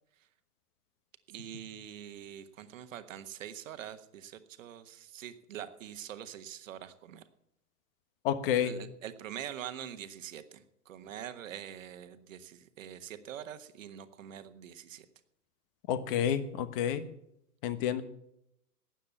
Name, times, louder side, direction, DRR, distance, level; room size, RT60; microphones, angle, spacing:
voice 1, 1.3-7.2 8.6-15.0, right 10 dB, 55° right, 10 dB, 1.4 m, -44 dB
voice 2, 8.2-8.7 15.9-17.0 17.6-18.0, left 9 dB, 35° left, 14 dB, 1.3 m, -29 dB
13.0 x 9.1 x 8.6 m, 0.79 s
figure-of-eight pair, 110°, 46 cm